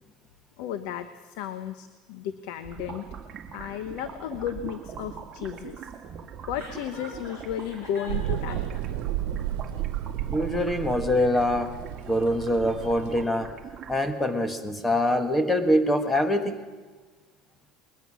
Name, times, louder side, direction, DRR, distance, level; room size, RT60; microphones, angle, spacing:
voice 1, 0.6-3.0 3.5-5.9 6.5-8.6, left 9 dB, 70° left, 11 dB, 1.0 m, -34 dB
sound 1, 2.6-14.1, right 7 dB, 30° right, 1.9 m, -42 dB
Chuckle chortle, 6.5-8.8, left 3 dB, 85° left, 6.2 m, -44 dB
sound 2, 8.1-13.3, right 12 dB, 80° right, 1.2 m, -32 dB
voice 2, 10.3-11.7 12.1-13.5 13.9-16.6, left 1 dB, 10° left, 8 dB, 1.6 m, -24 dB
21.0 x 20.5 x 6.3 m, 1.4 s
cardioid pair, 140°, 0 cm